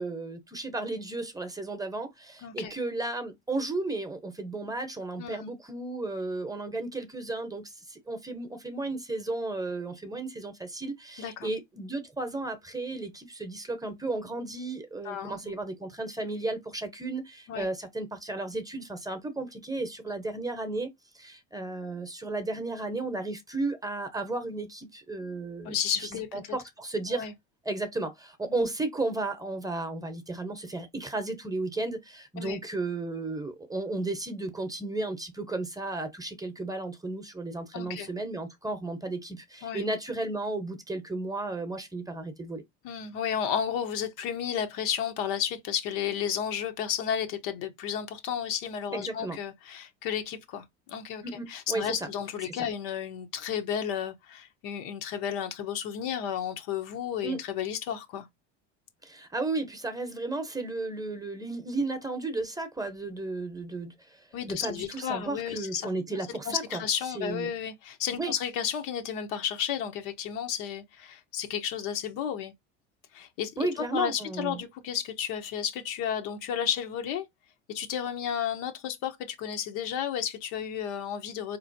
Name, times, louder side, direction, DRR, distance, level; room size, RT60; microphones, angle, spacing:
voice 1, 0.0-20.9 21.1-25.8 26.3-27.3 27.6-42.6 48.9-49.4 51.2-52.1 52.5-52.7 57.2-57.4 59.0-66.8 67.1-67.5 68.2-68.3 73.6-74.6, right 2 dB, 10° right, 0.9 m, -34 dB
voice 2, 2.4-2.7 5.2-5.4 11.2-11.5 15.0-15.5 17.5-17.7 25.6-26.6 27.1-27.3 28.5-28.7 32.4-32.6 37.7-38.1 39.6-39.8 42.8-51.2 51.5-58.3 64.3-65.9 66.5-72.5 73.1-77.3 77.7-81.6, left 8 dB, 65° left, 1.0 m, -32 dB
4.1 x 3.1 x 2.6 m
supercardioid pair, 90°, 36 cm